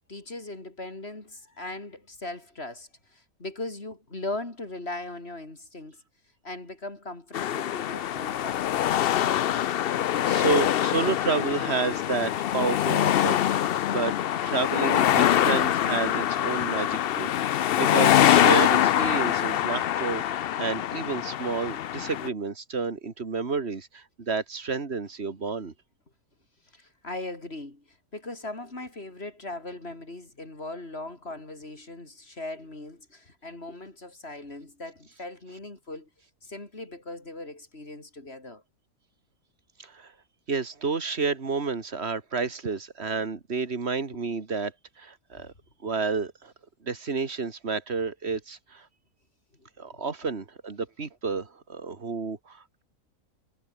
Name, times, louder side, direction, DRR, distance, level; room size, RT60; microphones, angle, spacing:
voice 1, 0.1-6.0 6.4-8.9 26.7-36.1 36.4-38.6 43.1-43.2 45.4-45.5 49.6-50.0, left 2 dB, 40° left, 4.2 m, -39 dB
sound 1, 7.3-22.3, left 11 dB, 80° left, 0.5 m, -24 dB
voice 2, 10.2-25.7 39.8-40.1 40.5-44.7 45.0-45.5 45.8-46.5 46.8-48.9 49.8-52.8, right 4 dB, 40° right, 2.4 m, -30 dB
omnidirectional pair, 1.6 m